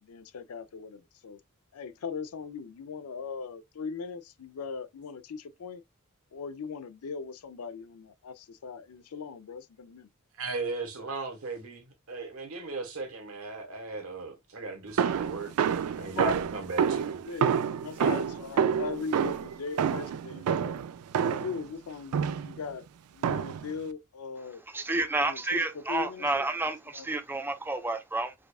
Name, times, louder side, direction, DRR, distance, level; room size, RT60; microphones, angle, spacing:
voice 1, 0.0-1.4 1.7-5.8 6.3-10.1 16.0-16.4 17.3-20.8 21.2-22.9 23.1-24.6 25.2-26.5 26.9-27.1, left 5 dB, 90° left, 0.5 m, -39 dB
voice 2, 10.4-17.2 18.0-18.2, right 3 dB, 70° right, 1.1 m, -36 dB
sound 1, 15.0-21.6 22.1-22.6 23.2-23.7, right 7 dB, 90° right, 0.3 m, -28 dB
voice 3, 24.7-28.3, right 2 dB, 10° right, 0.4 m, -30 dB
5.0 x 2.3 x 2.3 m
head